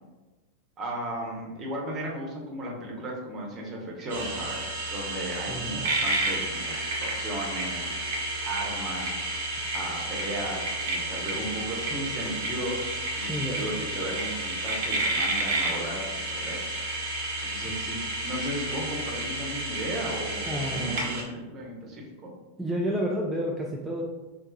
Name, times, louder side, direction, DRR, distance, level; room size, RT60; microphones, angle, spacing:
voice 1, 0.8-7.9 8.4-9.2 9.7-12.8 13.1-16.8 17.4-18.0 18.2-22.3, right 1 dB, 35° right, -2 dB, 1.0 m, -35 dB
sound 1, 4.1-21.2, right 2 dB, 60° right, 0.9 m, -31 dB
voice 2, 5.5-5.9 13.3-13.6 20.5-21.0 22.6-24.0, equal, 5° right, -3 dB, 0.4 m, -30 dB
4.4 x 2.7 x 2.3 m, 1.2 s
figure-of-eight pair, 90°, 0 cm